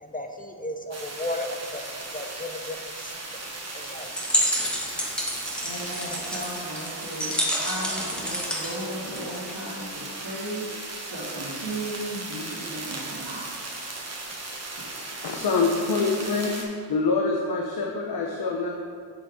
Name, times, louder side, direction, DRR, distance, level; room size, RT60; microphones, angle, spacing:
voice 1, 0.0-3.4 3.7-4.1 4.7-5.0, left 1 dB, 20° left, 4 dB, 0.5 m, -35 dB
sound 1, 0.9-16.6, right 2 dB, 35° right, 1.2 m, -37 dB
sound 2, 4.0-9.7, equal, ahead, 1.3 m, -29 dB
voice 2, 5.6-13.5, right 1 dB, 80° right, -8 dB, 2.0 m, -36 dB
voice 3, 15.2-16.5 16.9-18.7, left 4 dB, 55° left, 0 dB, 0.8 m, -25 dB
7.0 x 6.6 x 3.7 m, 2.1 s
cardioid pair, 85°, 44 cm